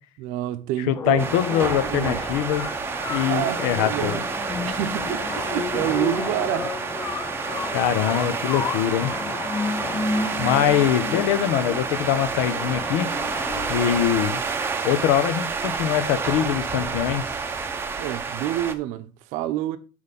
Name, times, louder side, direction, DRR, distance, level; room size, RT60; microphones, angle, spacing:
voice 1, 0.2-2.3 3.3-4.2 4.6-6.9 18.0-19.8, right 13 dB, 60° right, 0.8 m, -28 dB
voice 2, 0.9-2.6 3.1-4.2 7.7-9.1 10.4-13.1 13.7-14.4 14.8-17.2, left 11 dB, 80° left, 1.0 m, -23 dB
sound 1, 0.9-14.9, left 4 dB, 20° left, 0.4 m, -32 dB
sound 2, 1.2-18.7, right 5 dB, 15° right, 0.7 m, -29 dB
6.5 x 5.2 x 5.3 m
cardioid pair, 165°, 14 cm